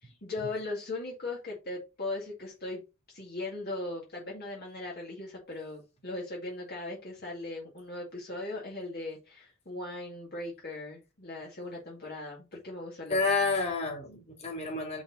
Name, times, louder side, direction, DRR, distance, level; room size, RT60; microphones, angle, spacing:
voice 1, 0.0-2.8 3.1-13.2, left 2 dB, 50° left, 2.2 m, -38 dB
voice 2, 13.1-15.0, left 3 dB, 30° left, 2.8 m, -29 dB
5.8 x 4.2 x 5.5 m
head